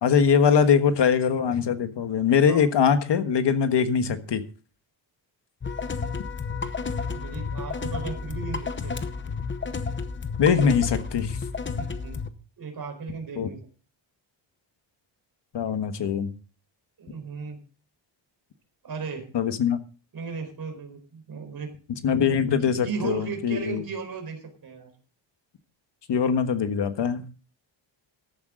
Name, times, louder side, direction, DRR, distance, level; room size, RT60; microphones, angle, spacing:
voice 1, 0.0-4.4 10.4-11.4 13.4-13.5 15.5-16.3 19.3-19.8 22.0-23.8 26.1-27.2, left 7 dB, 60° left, 1.5 m, -22 dB
sound 1, 5.6-12.3, left 5 dB, 25° left, 0.9 m, -31 dB
voice 2, 7.1-9.3 11.7-12.2 12.6-13.6 17.0-17.6 18.8-19.3 20.1-21.7 22.6-24.9, right 5 dB, 50° right, 4.5 m, -36 dB
14.5 x 11.5 x 3.8 m
wide cardioid pair, 180°, 46 cm